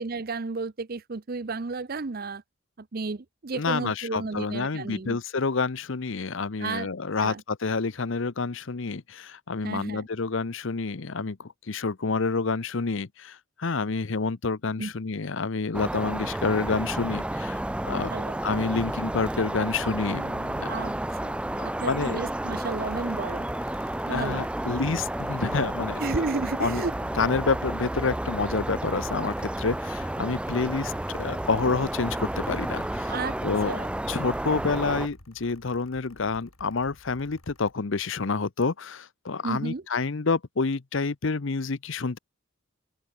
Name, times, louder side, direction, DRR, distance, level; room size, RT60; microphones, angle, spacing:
voice 1, 0.0-2.4 2.8-5.2 6.6-6.9 7.2-7.4 9.6-10.1 14.8-14.9 18.1-18.4 20.6-21.0 21.2-21.3 21.6-23.5 24.1-24.4 26.0-27.0 33.1-33.4 33.7-33.9 39.4-39.8, right 3 dB, 45° right, 0.6 m, -32 dB
voice 2, 3.5-18.1 18.4-20.2 20.6-20.9 21.9-22.2 24.1-26.0 26.6-26.8 27.2-33.1 33.4-33.7 34.1-42.2, left 4 dB, 65° left, 0.8 m, -28 dB
sound 1, 15.7-35.1, right 1 dB, 5° right, 0.3 m, -31 dB
Bass guitar, 20.1-23.1, right 1 dB, 80° right, 2.6 m, -50 dB
Mechanical fan, 22.4-37.7, left 2 dB, 85° left, 5.9 m, -53 dB
head